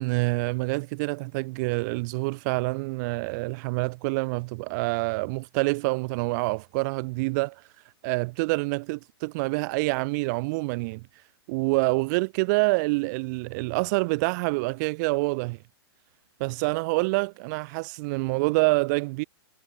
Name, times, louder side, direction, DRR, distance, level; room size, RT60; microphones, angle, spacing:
voice 1, 0.0-7.6 8.0-11.1 11.5-15.6 16.4-19.2, right 26 dB, 45° right, 3.9 m, -26 dB
hypercardioid pair, 135°, 13 cm